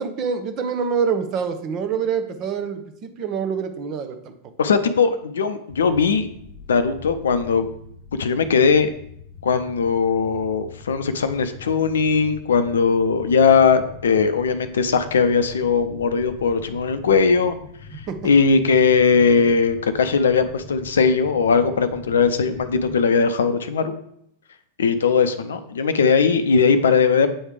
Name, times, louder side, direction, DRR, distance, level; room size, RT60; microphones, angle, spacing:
voice 1, 0.0-4.3 18.1-18.3, right 6 dB, 35° right, 7 dB, 0.8 m, -26 dB
voice 2, 4.6-6.3 6.7-7.7 8.2-8.9 9.4-17.5 18.2-23.9 24.8-27.3, left 5 dB, 65° left, 10 dB, 0.5 m, -19 dB
sound 1, 5.7-23.0, left 4 dB, 35° left, 0.7 m, -42 dB
7.8 x 3.3 x 4.8 m, 0.70 s
figure-of-eight pair, 90°, 0 cm